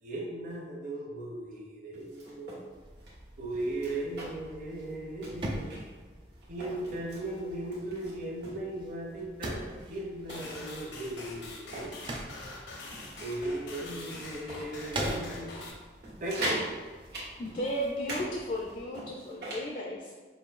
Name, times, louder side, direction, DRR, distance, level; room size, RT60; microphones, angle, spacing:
voice 1, 0.0-2.7 3.4-5.7 6.5-12.2 13.2-15.5 16.2-16.6, right 1 dB, 45° right, -3 dB, 0.8 m, -37 dB
sound 1, 1.9-2.6 3.0-3.1 3.5-4.5 4.8-4.9 5.2-6.0 6.4-7.2 7.7-8.6 9.2-9.3 9.7-11.9 12.3-12.5 12.9-13.6 14.0-14.1 14.5-15.3 15.6-15.7 16.0-16.7 17.1-18.3 18.5-19.7, right 1 dB, 70° right, 1.3 m, -40 dB
sound 2, 2.7-18.8, right 1 dB, 30° right, 0.4 m, -44 dB
sound 3, 10.3-15.7, left 2 dB, 80° left, 0.7 m, -44 dB
voice 2, 17.4-20.1, equal, 45° left, -1 dB, 0.3 m, -34 dB
5.4 x 2.5 x 2.4 m, 1.4 s
head